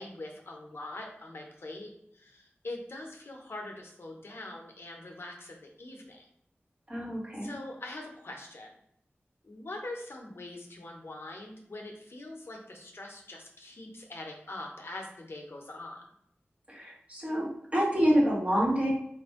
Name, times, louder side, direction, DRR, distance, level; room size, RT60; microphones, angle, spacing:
voice 1, 0.0-1.9 2.1-6.3 7.4-8.7 9.4-16.0, left 2 dB, 65° left, 1 dB, 0.8 m, -43 dB
voice 2, 6.9-7.5 16.7-17.5 17.7-18.9, equal, 30° right, -4 dB, 1.4 m, -27 dB
4.3 x 2.5 x 3.6 m, 0.72 s
wide cardioid pair, 75°, 4 cm